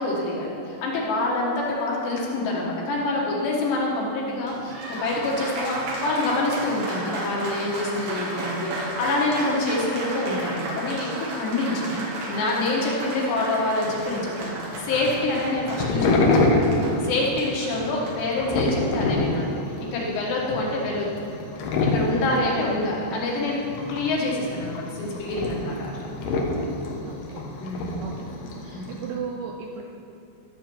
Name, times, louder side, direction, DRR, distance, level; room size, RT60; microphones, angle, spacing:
voice 1, 0.0-14.5 14.8-16.8 17.0-19.5 19.9-21.1 21.9-23.6 23.9-25.9 27.6-28.0 28.7-28.9, left 2 dB, 70° left, -3 dB, 3.4 m, -26 dB
Applause, 4.3-19.0, right 2 dB, 60° right, 2.6 m, -34 dB
sound 1, 13.9-29.1, left 2 dB, 85° left, 1.8 m, -27 dB
voice 2, 27.1-27.4 28.0-28.1 28.6-29.8, right 6 dB, 80° right, 0 dB, 2.4 m, -35 dB
14.0 x 7.4 x 4.5 m, 2.8 s
omnidirectional pair, 5.4 m